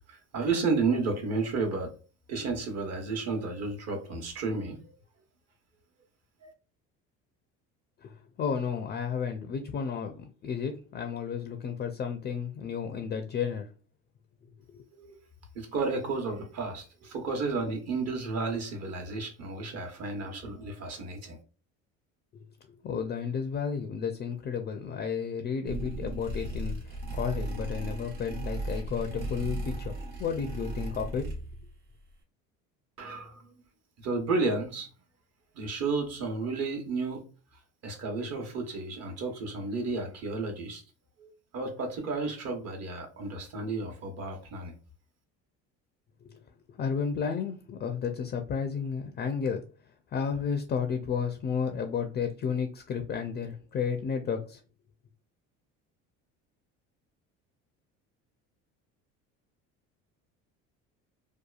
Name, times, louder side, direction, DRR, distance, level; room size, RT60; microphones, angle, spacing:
voice 1, 0.1-1.9 2.3-4.8 6.4-6.5 15.0-15.2 15.5-21.4 33.0-33.4 34.0-34.9 35.5-37.2 37.8-40.8 41.2-44.7, right 3 dB, 55° right, 1.0 m, -32 dB
voice 2, 8.0-13.7 14.7-14.8 22.3-29.9 30.2-31.3 46.2-46.3 46.8-49.6 50.1-54.6, left 6 dB, 30° left, 0.4 m, -32 dB
sound 1, 25.7-31.7, right 1 dB, 85° right, 0.9 m, -36 dB
2.8 x 2.3 x 2.3 m
supercardioid pair, 100°, 32 cm